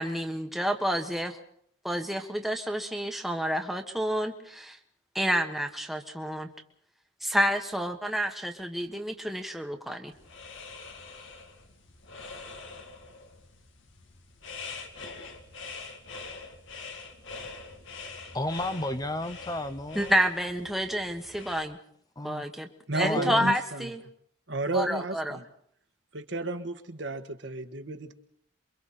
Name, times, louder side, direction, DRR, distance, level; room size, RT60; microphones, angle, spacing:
voice 1, 0.0-1.4 1.8-4.8 5.1-6.5 7.2-10.1 19.9-21.8 22.2-22.7 22.9-24.0 24.7-25.4, equal, ahead, 4 dB, 1.5 m, -29 dB
sound 1, 10.1-21.6, left 4 dB, 70° left, 2.7 m, -44 dB
voice 2, 18.3-20.1 22.2-22.4 23.0-23.5, left 1 dB, 20° left, 9 dB, 0.8 m, -32 dB
voice 3, 22.9-23.9 24.5-25.4 26.1-28.1, right 2 dB, 60° right, 6 dB, 1.6 m, -32 dB
28.0 x 24.0 x 4.3 m, 0.66 s
head